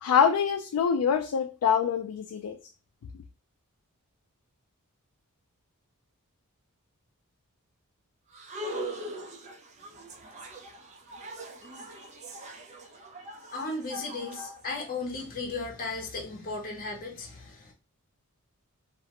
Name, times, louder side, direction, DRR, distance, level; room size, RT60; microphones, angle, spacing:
voice 1, 0.0-2.6, left 7 dB, 85° left, 5 dB, 0.3 m, -25 dB
sound 1, 8.3-15.2, right 1 dB, 30° right, 0.4 m, -41 dB
voice 2, 13.5-17.7, left 3 dB, 40° left, 1 dB, 0.6 m, -35 dB
2.4 x 2.1 x 2.8 m, 0.32 s
head